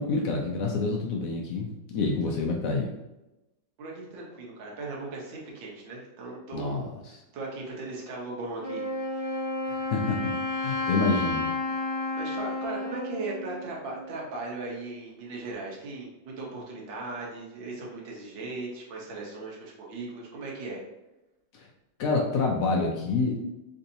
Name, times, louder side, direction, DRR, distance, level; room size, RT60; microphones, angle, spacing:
voice 1, 0.0-2.9 6.5-6.9 9.6-10.3 10.6-11.5 21.5-21.6 22.0-23.4, left 3 dB, 80° left, 0 dB, 0.7 m, -27 dB
voice 2, 3.8-6.8 7.1-8.9 9.1-9.2 12.1-20.8, right 3 dB, 85° right, -2 dB, 1.6 m, -38 dB
Wind instrument woodwind instrument, 8.6-14.3, left 2 dB, 40° left, 0.9 m, -32 dB
3.8 x 2.6 x 2.7 m, 0.98 s
omnidirectional pair, 2.0 m